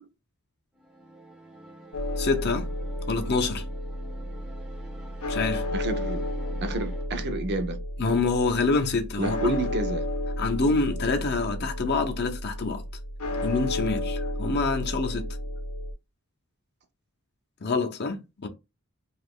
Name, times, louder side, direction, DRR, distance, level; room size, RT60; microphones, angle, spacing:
sound 1, 0.8-7.1, right 1 dB, 5° right, 0.5 m, -47 dB
sound 2, 1.9-15.9, left 1 dB, 85° left, 0.7 m, -32 dB
voice 1, 2.2-2.7 3.1-3.6 5.3-5.6 8.0-9.6 10.4-12.8 13.4-15.3 17.6-18.5, left 3 dB, 50° left, 0.6 m, -26 dB
voice 2, 5.7-6.2 6.6-7.8 9.2-10.0, right 2 dB, 50° right, 0.6 m, -30 dB
2.9 x 2.4 x 3.5 m
head